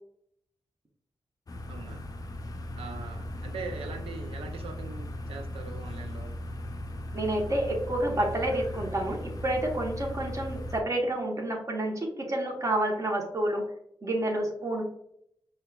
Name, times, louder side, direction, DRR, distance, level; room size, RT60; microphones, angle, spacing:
sound 1, 1.5-10.8, left 1 dB, 40° left, 0.5 m, -38 dB
voice 1, 1.7-2.0 2.7-6.3, right 4 dB, 85° right, 5 dB, 0.5 m, -41 dB
voice 2, 7.1-13.6 14.0-14.8, right 1 dB, 35° right, 0 dB, 1.1 m, -29 dB
5.3 x 2.3 x 2.3 m, 0.72 s
supercardioid pair, 40°, 9 cm